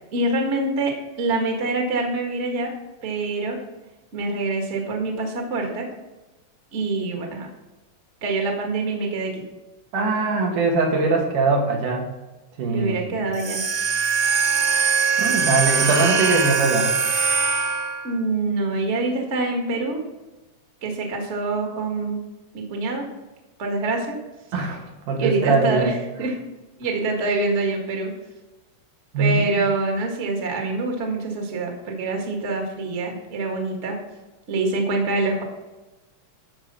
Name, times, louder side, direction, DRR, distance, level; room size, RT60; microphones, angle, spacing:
voice 1, 0.1-2.7 3.0-3.6 4.1-5.9 6.7-7.5 8.2-9.4 12.7-13.6 15.9-16.0 18.0-20.0 20.8-22.2 22.5-23.0 23.6-24.2 25.1-26.4 26.8-28.1 29.2-33.9 34.5-35.4, right 3 dB, 30° right, 1 dB, 1.3 m, -25 dB
voice 2, 9.9-12.0 12.6-13.2 15.2-16.9 24.5-24.8 25.1-25.9 29.1-29.4, right 3 dB, 75° right, 0 dB, 3.2 m, -21 dB
sound 1, 13.3-18.1, right 5 dB, 55° right, 1.4 m, -22 dB
12.5 x 4.9 x 6.8 m, 1.1 s
omnidirectional pair, 3.7 m